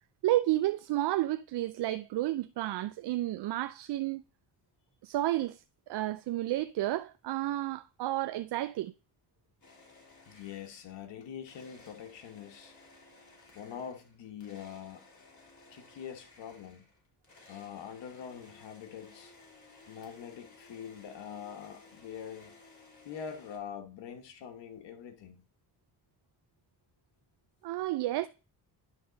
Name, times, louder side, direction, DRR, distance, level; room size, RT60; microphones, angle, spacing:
voice 1, 0.2-4.2 5.0-8.9 27.6-28.3, right 15 dB, 70° right, 0.5 m, -31 dB
sound 1, 9.6-11.0 11.4-23.6, left 3 dB, 45° left, 3.2 m, -57 dB
voice 2, 10.3-12.8 13.5-15.0 15.7-16.8 17.5-19.3 19.9-22.5 23.0-25.4, left 8 dB, 85° left, 1.2 m, -44 dB
10.5 x 3.6 x 3.9 m
cardioid pair, 70°, 42 cm